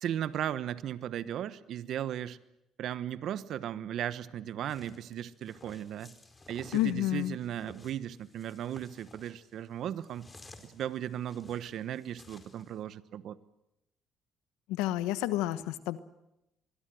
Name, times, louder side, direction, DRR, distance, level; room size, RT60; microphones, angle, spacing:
voice 1, 0.0-2.4 2.8-6.1 6.5-10.3 10.6-13.4, right 10 dB, 65° right, 15 dB, 1.1 m, -36 dB
sound 1, 4.7-12.8, left 2 dB, 25° left, 4.6 m, -55 dB
voice 2, 6.7-7.4 14.7-16.0, left 14 dB, 85° left, 13 dB, 1.2 m, -30 dB
24.5 x 22.0 x 7.8 m, 0.88 s
supercardioid pair, 75°, 0 cm